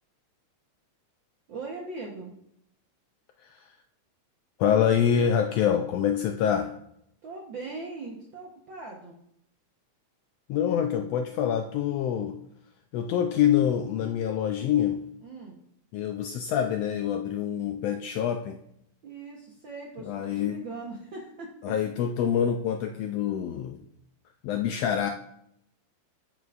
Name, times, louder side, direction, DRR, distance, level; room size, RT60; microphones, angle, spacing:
voice 1, 1.5-2.3 7.2-9.2 15.2-15.6 19.0-21.5, right 3 dB, 65° right, -1 dB, 1.2 m, -40 dB
voice 2, 4.6-6.7 10.5-12.4 12.9-15.0 15.9-18.6 20.0-20.6 21.6-23.8 24.4-25.1, left 9 dB, 80° left, 5 dB, 1.5 m, -26 dB
9.2 x 9.2 x 2.4 m, 0.75 s
omnidirectional pair, 3.3 m